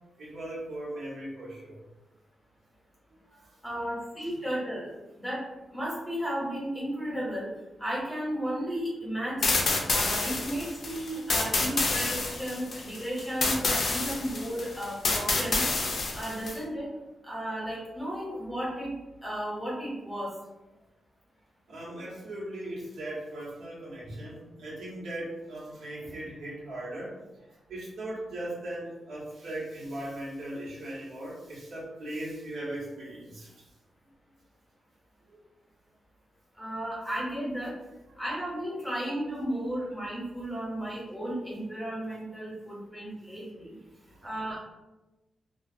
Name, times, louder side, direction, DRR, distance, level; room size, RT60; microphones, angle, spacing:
voice 1, 0.2-1.8 3.3-3.6 4.2-4.4 10.2-10.5 21.7-33.7 35.3-35.4 38.1-38.2 44.0-44.4, right 1 dB, 90° right, -7 dB, 1.0 m, -39 dB
voice 2, 3.6-5.4 5.7-7.5 7.8-15.6 16.1-16.9 17.2-18.9 19.2-20.3 36.6-37.7 38.2-43.7 44.2-44.6, equal, 10° left, -6 dB, 0.8 m, -34 dB
sound 1, 9.4-16.6, left 3 dB, 45° left, 0.4 m, -28 dB
2.4 x 2.3 x 2.6 m, 1.1 s
wide cardioid pair, 175°, 0 cm